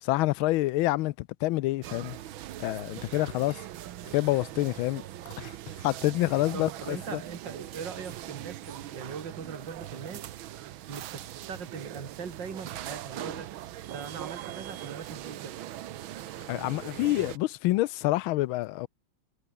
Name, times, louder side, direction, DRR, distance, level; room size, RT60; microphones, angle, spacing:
voice 1, 0.0-2.2 2.6-3.6 4.1-7.2 16.5-18.9, left 17 dB, 85° left, 1.4 m, -28 dB
sound 1, 1.8-17.4, right 13 dB, 80° right, 1.7 m, -41 dB
voice 2, 6.5-10.2 10.9-13.5 13.9-15.6, right 6 dB, 60° right, 3.3 m, -40 dB
omnidirectional pair, 2.2 m